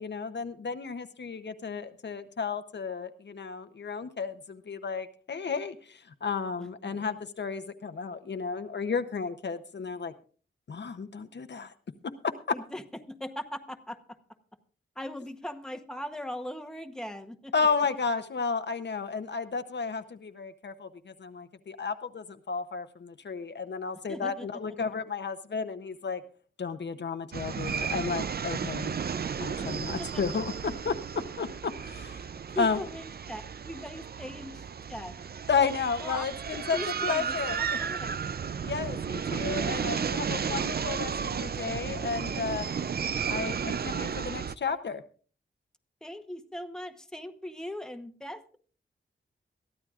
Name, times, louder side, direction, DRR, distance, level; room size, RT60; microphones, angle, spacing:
voice 1, 0.0-10.1 10.7-11.7 17.5-26.2 26.6-30.9 31.4-32.2 32.6-32.8 35.5-37.6 38.6-42.7 43.3-45.0, left 5 dB, 60° left, 9 dB, 0.8 m, -33 dB
voice 2, 6.6-6.9 12.5-14.2 15.0-17.5 24.1-24.5 29.6-29.7 30.0-30.2 32.5-35.2 36.0-36.2 36.7-38.1 46.0-48.6, left 1 dB, 5° left, 7 dB, 0.9 m, -40 dB
sound 1, 27.3-44.5, right 6 dB, 50° right, 0.5 m, -33 dB
22.0 x 14.0 x 2.4 m, 0.41 s
wide cardioid pair, 110°, 20 cm